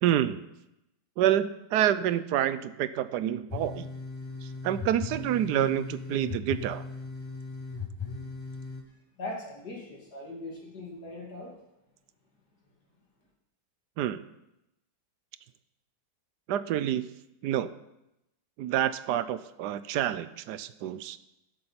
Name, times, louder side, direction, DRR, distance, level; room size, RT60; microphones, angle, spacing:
voice 1, 0.0-0.5 1.2-3.9 4.4-6.8 14.0-14.2 16.5-17.1 17.4-17.7 18.6-21.2, right 11 dB, 80° right, 14 dB, 1.2 m, -28 dB
sound 1, 3.5-8.8, left 4 dB, 20° left, 0.9 m, -38 dB
voice 2, 9.2-11.6, left 2 dB, 65° left, -2 dB, 3.1 m, -40 dB
12.0 x 7.8 x 5.7 m, 0.88 s
omnidirectional pair, 1.8 m